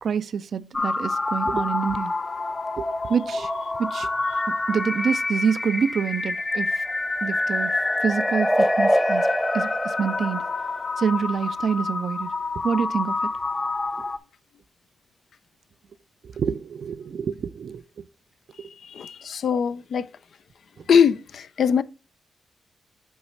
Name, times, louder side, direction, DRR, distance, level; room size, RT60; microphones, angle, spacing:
voice 1, 0.0-2.1 2.8-3.5 3.8-4.1 4.7-6.8 7.2-10.5 11.0-12.3 12.6-13.3 16.2-17.8, right 7 dB, 70° right, 0.3 m, -27 dB
sound 1, 0.7-14.2, left 3 dB, 40° left, 0.6 m, -28 dB
sound 2, 6.4-11.1, equal, 5° left, 0.8 m, -25 dB
voice 2, 18.9-20.1 20.9-21.8, left 7 dB, 75° left, 0.3 m, -21 dB
8.0 x 3.1 x 4.1 m
cardioid pair, 55°, 0 cm